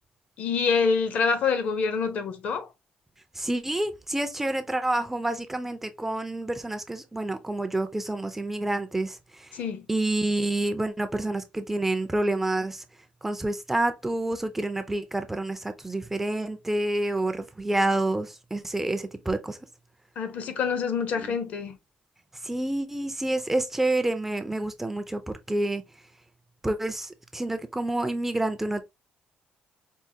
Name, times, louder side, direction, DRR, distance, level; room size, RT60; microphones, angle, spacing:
voice 1, 0.4-2.7 9.5-9.8 20.2-21.8, left 5 dB, 55° left, 0.6 m, -26 dB
voice 2, 3.4-9.5 9.9-12.8 13.2-19.6 21.2-21.3 22.4-25.8 26.6-28.8, right 2 dB, 10° right, 0.3 m, -28 dB
4.5 x 2.0 x 2.7 m
cardioid pair, 155°, 3 cm